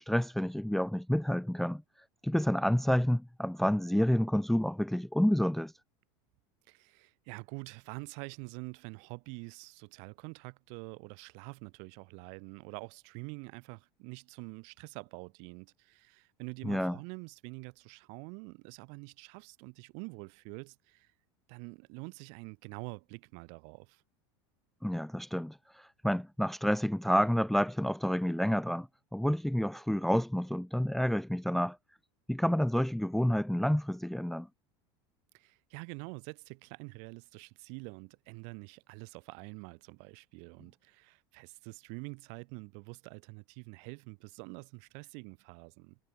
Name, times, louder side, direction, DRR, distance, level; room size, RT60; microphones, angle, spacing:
voice 1, 0.0-1.8 2.2-5.7 16.6-17.0 24.8-28.9 29.1-31.8 32.3-34.5, equal, ahead, 0.8 m, -29 dB
voice 2, 6.7-21.1 21.5-24.0 35.3-46.0, right 40 dB or more, 60° right, 5.0 m, -46 dB
supercardioid pair, 135°, 13 cm